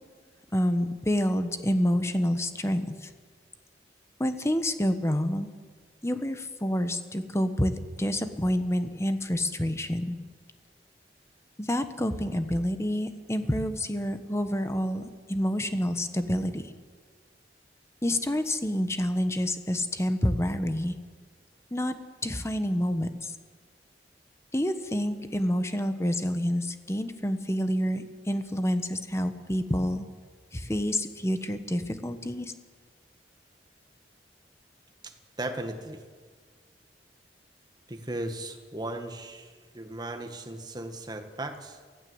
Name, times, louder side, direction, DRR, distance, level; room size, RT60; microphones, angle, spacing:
voice 1, 0.5-3.1 4.2-5.5 6.0-10.2 11.6-16.7 18.0-21.0 21.7-22.0 22.2-23.3 24.5-30.1 30.5-32.5, equal, 15° left, 9 dB, 1.2 m, -28 dB
voice 2, 35.0-36.0 37.9-41.8, right 1 dB, 25° right, 6 dB, 1.7 m, -37 dB
24.0 x 15.5 x 8.0 m, 1.5 s
head